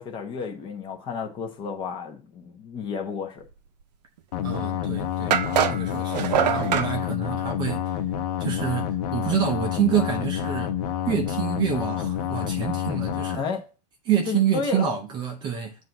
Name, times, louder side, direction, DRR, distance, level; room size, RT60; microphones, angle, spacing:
voice 1, 0.0-3.4 13.3-13.7 14.3-14.8, left 5 dB, 25° left, 1.1 m, -32 dB
sound 1, 4.3-13.4, left 10 dB, 60° left, 0.9 m, -28 dB
voice 2, 4.4-5.4 5.7-7.8 8.4-10.7 11.1-13.4 14.1-15.8, right 8 dB, 20° right, 0.7 m, -27 dB
sound 2, 4.5-4.6 5.3-6.9, right 9 dB, 80° right, 0.8 m, -23 dB
7.7 x 2.7 x 5.8 m
supercardioid pair, 165°, 21 cm